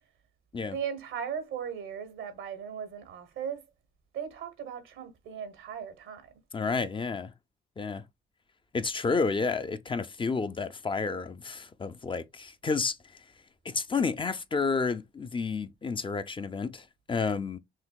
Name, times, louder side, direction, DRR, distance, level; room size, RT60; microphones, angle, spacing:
voice 1, 0.6-3.6 4.1-6.3, right 7 dB, 80° right, 1.2 m, -37 dB
voice 2, 6.5-7.3 7.8-8.0 8.7-13.2 13.6-17.6, left 4 dB, 25° left, 0.5 m, -30 dB
5.8 x 2.7 x 2.3 m
cardioid pair, 90°, 20 cm